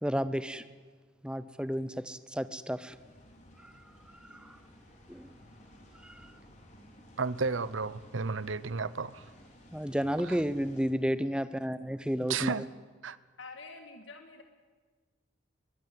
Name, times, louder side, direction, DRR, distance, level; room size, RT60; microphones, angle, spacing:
voice 1, 0.0-0.6 1.2-3.0 3.6-3.7 4.2-4.6 5.1-5.3 6.0-6.3 9.7-12.5, equal, 5° right, 13 dB, 0.7 m, -32 dB
sound 1, 2.9-10.9, equal, 35° left, 3.9 m, -56 dB
voice 2, 7.2-9.2 10.3-10.4 12.3-12.6 13.0-13.2, right 4 dB, 80° right, 17 dB, 0.8 m, -32 dB
voice 3, 13.4-14.4, left 3 dB, 75° left, 5 dB, 1.8 m, -47 dB
22.5 x 22.0 x 7.7 m, 1.4 s
head